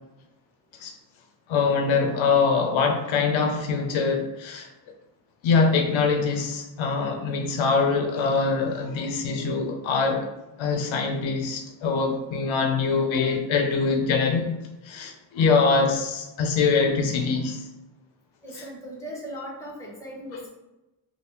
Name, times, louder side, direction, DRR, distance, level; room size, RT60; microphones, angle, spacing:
voice 1, 1.5-4.7 5.4-10.3 10.6-14.6 14.8-17.7, left 4 dB, 75° left, 4 dB, 0.6 m, -23 dB
voice 2, 18.4-20.5, equal, 5° left, -3 dB, 1.1 m, -38 dB
3.4 x 2.4 x 2.9 m, 0.98 s
cardioid pair, 100°, 47 cm